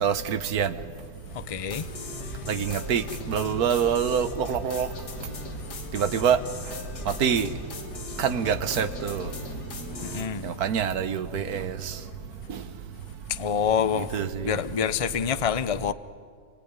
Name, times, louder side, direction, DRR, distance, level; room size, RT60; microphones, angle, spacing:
voice 1, 0.0-0.7 2.5-4.9 5.9-6.4 7.2-7.5 8.2-9.3 10.4-11.7 14.0-14.5, right 7 dB, 65° right, 1.5 m, -25 dB
voice 2, 1.3-1.9 2.2-2.4 10.0-10.4 13.3-15.9, left 7 dB, 50° left, 0.4 m, -27 dB
sound 1, 1.7-10.3, left 3 dB, 80° left, 2.5 m, -38 dB
29.0 x 18.5 x 9.7 m
omnidirectional pair, 1.8 m